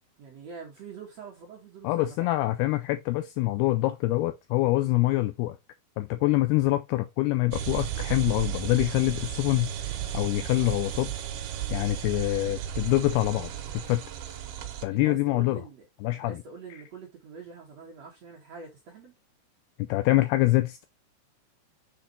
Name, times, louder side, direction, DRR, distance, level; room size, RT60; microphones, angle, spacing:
voice 1, 0.2-2.3 14.9-15.9 16.1-19.1, right 5 dB, 55° right, 1.9 m, -45 dB
voice 2, 1.8-5.6 6.0-11.1 11.7-14.0 14.8-15.6 16.0-16.4 19.8-20.9, left 18 dB, 85° left, 2.3 m, -25 dB
sound 1, 7.5-14.9, right 10 dB, 75° right, 2.7 m, -34 dB
7.2 x 4.3 x 4.1 m
omnidirectional pair, 5.0 m